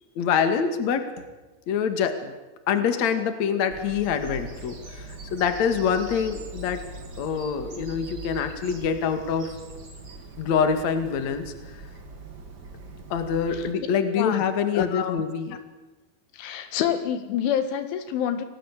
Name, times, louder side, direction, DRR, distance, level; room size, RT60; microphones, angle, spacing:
voice 1, 0.2-1.1 1.7-2.3 2.7-6.9 7.2-9.6 10.4-11.8 13.1-15.6, left 7 dB, 45° left, 8 dB, 2.8 m, -25 dB
Bird vocalization bird call bird song, 3.7-13.7, right 2 dB, 35° right, 1.9 m, -42 dB
voice 2, 14.7-15.2 16.3-18.5, left 9 dB, 90° left, 9 dB, 4.3 m, -27 dB
28.0 x 18.5 x 8.4 m, 1.1 s
omnidirectional pair, 5.3 m